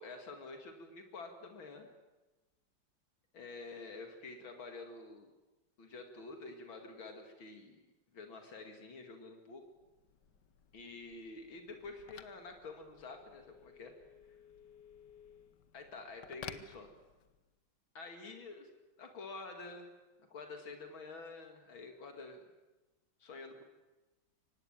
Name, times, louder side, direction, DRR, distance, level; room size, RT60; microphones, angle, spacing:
voice 1, 0.0-1.9 3.3-5.3 5.8-7.8 8.1-9.6 10.7-13.9 15.7-16.9 17.9-18.7 19.0-19.9 20.3-22.4 23.2-23.6, left 3 dB, 85° left, 5 dB, 3.1 m, -48 dB
Telephone, 9.7-17.5, left 9 dB, 65° left, 1.6 m, -55 dB
24.5 x 19.0 x 9.1 m, 1.1 s
omnidirectional pair, 2.1 m